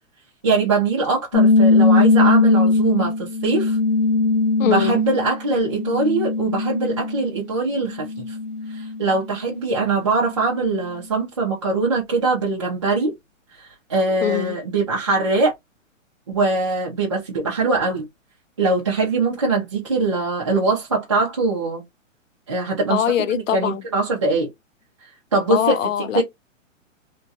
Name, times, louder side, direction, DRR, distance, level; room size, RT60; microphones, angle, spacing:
voice 1, 0.4-3.8 4.6-8.4 8.7-13.1 13.6-15.5 16.3-18.1 18.6-21.8 22.5-23.0 23.3-24.5 25.3-25.8 26.1-26.2, right 3 dB, 25° right, 0.5 m, -22 dB
sound 1, 1.3-7.4 7.8-9.2, left 3 dB, 30° left, 0.5 m, -19 dB
voice 2, 4.6-5.0 14.2-14.6 22.9-23.8 25.5-26.2, left 10 dB, 75° left, 0.6 m, -22 dB
2.9 x 2.4 x 2.6 m
hypercardioid pair, 175°, 40 cm